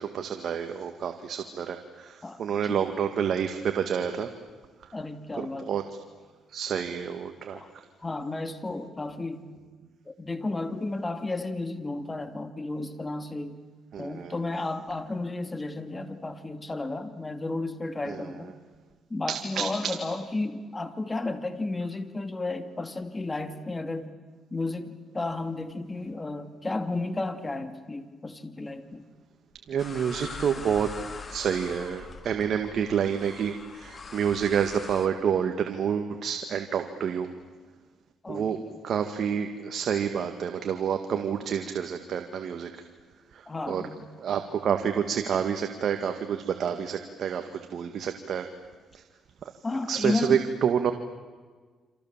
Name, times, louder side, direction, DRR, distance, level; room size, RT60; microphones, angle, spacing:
voice 1, 0.0-4.3 4.8-4.9 5.4-5.8 6.5-7.6 13.9-14.4 18.1-18.4 19.3-19.9 29.7-30.9 31.3-37.3 38.3-38.6 38.8-42.8 43.3-43.8 44.2-48.5 48.9-49.0 49.9-50.9, right 8 dB, 60° right, 6 dB, 1.9 m, -28 dB
voice 2, 2.2-2.8 4.9-5.8 7.5-7.7 8.0-9.5 10.1-13.6 14.0-18.6 19.1-24.1 24.5-29.0 38.2-38.8 43.5-44.1 49.6-50.4, left 2 dB, 20° left, 9 dB, 2.7 m, -33 dB
sound 1, 29.8-35.1, left 4 dB, 35° left, 2.7 m, -43 dB
28.5 x 27.0 x 7.5 m, 1.4 s
cardioid pair, 90°, 0 cm